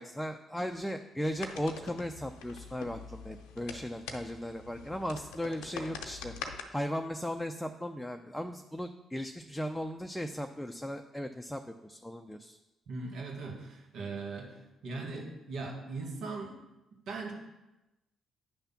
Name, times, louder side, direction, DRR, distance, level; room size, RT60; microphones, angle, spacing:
voice 1, 0.0-6.3 6.7-12.6, equal, 5° left, 5 dB, 0.5 m, -37 dB
sound 1, 1.4-6.6, left 5 dB, 85° left, 0.7 m, -44 dB
voice 2, 12.9-16.6 17.1-17.3, right 3 dB, 75° right, -1 dB, 1.8 m, -39 dB
9.3 x 3.4 x 5.8 m, 1.0 s
supercardioid pair, 55°, 0 cm